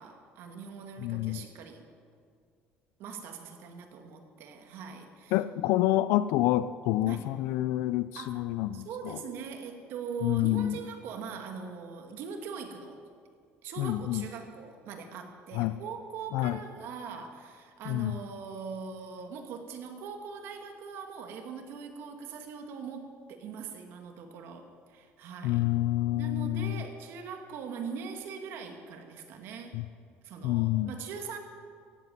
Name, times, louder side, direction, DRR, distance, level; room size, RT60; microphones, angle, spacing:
voice 1, 0.0-1.9 3.0-5.4 7.0-7.3 8.1-8.4 8.7-13.0 13.6-25.6 26.1-29.8 30.2-31.4, right 6 dB, 70° right, 5 dB, 2.1 m, -41 dB
voice 2, 1.0-1.4 5.3-8.9 10.2-10.8 13.8-14.2 15.5-15.8 16.3-16.6 17.9-18.2 25.4-26.7 29.7-29.8 30.4-30.9, left 15 dB, 80° left, 14 dB, 0.4 m, -28 dB
15.5 x 8.2 x 9.2 m, 2.1 s
cardioid pair, 115°, 4 cm